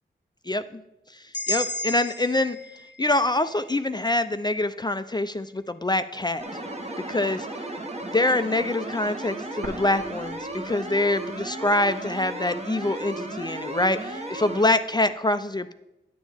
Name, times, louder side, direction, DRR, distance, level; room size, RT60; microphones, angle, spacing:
voice 1, 0.5-0.8 1.5-2.6 3.0-6.4 7.1-7.5 8.0-15.7, left 2 dB, 20° left, 11 dB, 0.4 m, -25 dB
sound 1, 1.3-5.4, left 2 dB, 60° left, 0.7 m, -35 dB
sound 2, 6.4-14.7, right 2 dB, 35° right, 1.1 m, -35 dB
sound 3, 9.6-11.6 11.9-12.0 12.7-13.6, right 1 dB, 65° right, 1.2 m, -43 dB
10.0 x 7.2 x 3.4 m, 0.92 s
cardioid pair, 60°, 20 cm